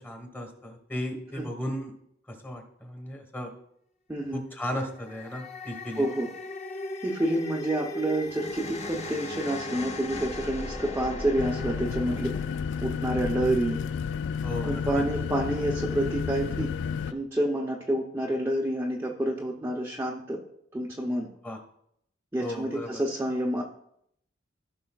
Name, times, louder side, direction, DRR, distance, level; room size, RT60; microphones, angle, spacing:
voice 1, 0.0-1.9 2.3-3.5 4.3-6.1 14.4-15.0 21.4-21.6 22.4-23.0, equal, 10° left, 5 dB, 1.4 m, -35 dB
voice 2, 4.1-4.4 6.0-6.3 7.0-12.3 12.8-13.8 14.6-16.7 17.1-20.4 20.7-21.3 22.3-23.6, right 1 dB, 15° right, -3 dB, 0.8 m, -28 dB
sound 1, 4.8-14.1, left 2 dB, 35° left, 0.7 m, -38 dB
sound 2, 11.4-17.1, left 6 dB, 65° left, 0.3 m, -31 dB
15.0 x 5.5 x 2.4 m, 0.72 s
head